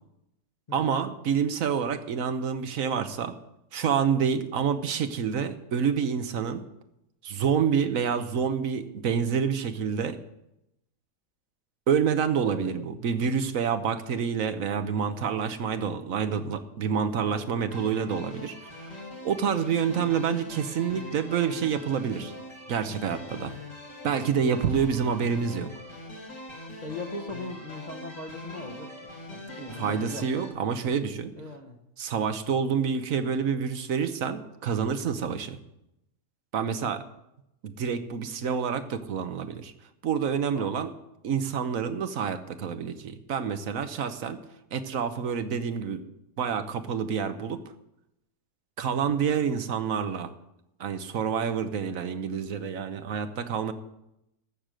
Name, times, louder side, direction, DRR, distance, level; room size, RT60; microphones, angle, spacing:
voice 1, 0.7-3.3 3.7-6.6 7.2-10.2 11.9-18.5 19.2-22.3 22.7-23.5 24.0-25.7 29.8-31.3 32.0-35.6 36.5-37.0 37.6-39.7 40.0-40.9 41.2-44.4 44.7-46.0 46.4-47.6 48.8-50.3 50.8-53.7, right 7 dB, 65° right, 10 dB, 1.3 m, -28 dB
voice 2, 12.4-12.9 17.3-17.5 26.8-30.5 31.4-31.8 35.1-35.4 40.5-40.8 48.9-49.2, left 2 dB, 30° left, 3 dB, 1.1 m, -40 dB
sound 1, 17.7-30.5, left 1 dB, 55° left, 3.0 m, -43 dB
14.0 x 6.6 x 7.6 m, 0.85 s
omnidirectional pair, 1.6 m